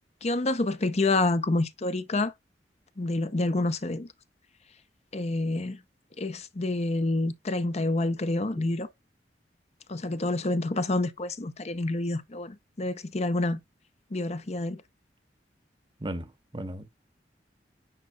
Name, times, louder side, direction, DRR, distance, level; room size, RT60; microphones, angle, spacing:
voice 1, 0.2-2.3 3.0-4.1 5.1-5.8 6.2-8.9 9.9-13.6 14.1-14.8, left 2 dB, 40° left, 0.7 m, -28 dB
voice 2, 16.0-16.9, right 1 dB, 30° right, 1.0 m, -36 dB
9.0 x 5.3 x 2.3 m
head